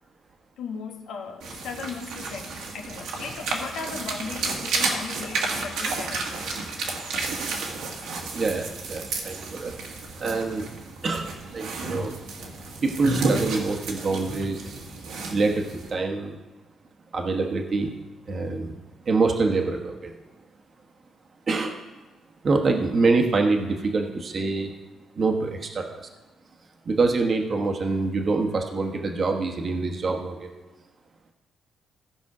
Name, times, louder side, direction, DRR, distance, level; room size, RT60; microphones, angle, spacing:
voice 1, 0.6-6.6, left 5 dB, 80° left, 1.3 m, -37 dB
sound 1, 1.4-15.9, right 3 dB, 85° right, 1.7 m, -31 dB
voice 2, 8.3-9.7 10.2-10.6 11.0-12.1 12.8-14.8 15.1-16.4 17.1-17.9 18.3-18.7 19.0-20.1 21.5-21.8 22.4-24.7 25.2-26.1 26.8-30.5, right 3 dB, 45° right, 1.2 m, -25 dB
15.5 x 5.5 x 4.9 m
cardioid pair, 90°, 0 cm